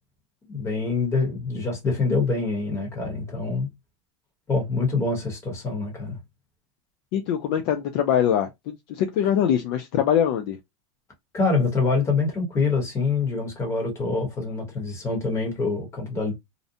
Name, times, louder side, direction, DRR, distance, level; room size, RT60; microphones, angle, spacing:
voice 1, 0.5-3.7 4.5-6.2 11.3-16.3, left 4 dB, 15° left, 1.0 m, -25 dB
voice 2, 7.1-10.6, left 9 dB, 50° left, 0.4 m, -23 dB
2.5 x 2.1 x 2.6 m
supercardioid pair, 165°, 16 cm